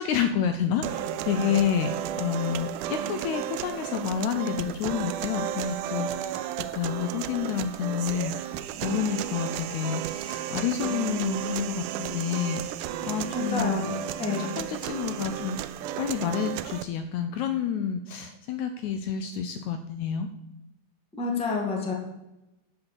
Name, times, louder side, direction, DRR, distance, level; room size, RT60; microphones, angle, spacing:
voice 1, 0.0-6.4 6.7-8.5 8.8-13.9 14.4-15.6 16.0-20.3, left 8 dB, 75° left, 8 dB, 1.8 m, -29 dB
sound 1, 0.8-16.8, right 11 dB, 80° right, 2.1 m, -33 dB
voice 2, 13.3-13.9 14.2-14.6 21.1-21.9, left 4 dB, 5° left, -1 dB, 1.1 m, -29 dB
12.0 x 5.5 x 6.8 m, 0.95 s
omnidirectional pair, 3.7 m